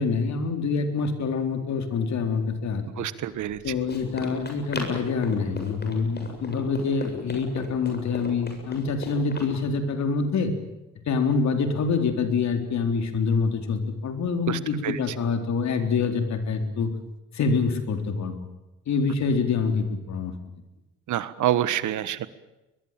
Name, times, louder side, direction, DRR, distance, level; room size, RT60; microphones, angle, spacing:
voice 1, 0.0-3.1 3.6-10.5 11.1-17.0 17.3-18.5 18.9-20.3, left 5 dB, 65° left, 6 dB, 3.9 m, -26 dB
voice 2, 3.0-3.6 14.5-15.0 21.1-22.3, right 12 dB, 75° right, 14 dB, 1.5 m, -27 dB
Run, 3.3-9.5, left 3 dB, 35° left, 7.6 m, -37 dB
22.5 x 22.0 x 9.1 m, 1.0 s
cardioid pair, 90°, 30 cm